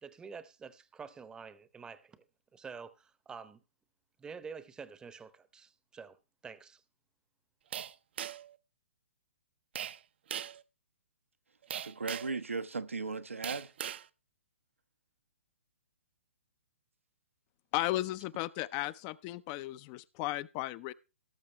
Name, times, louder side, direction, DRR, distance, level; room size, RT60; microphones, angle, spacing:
voice 1, 0.0-2.2 2.5-3.6 4.2-6.2 6.4-6.8, right 5 dB, 10° right, 0.7 m, -48 dB
sound 1, 7.7-8.6 9.8-10.0 10.3-10.6 11.7-12.4 13.4-14.1, right 10 dB, 55° right, 0.6 m, -39 dB
voice 2, 11.7-13.7, right 4 dB, 85° right, 0.9 m, -37 dB
voice 3, 17.7-20.9, left 17 dB, 30° left, 0.5 m, -35 dB
18.0 x 6.6 x 3.2 m
figure-of-eight pair, 125°, 7 cm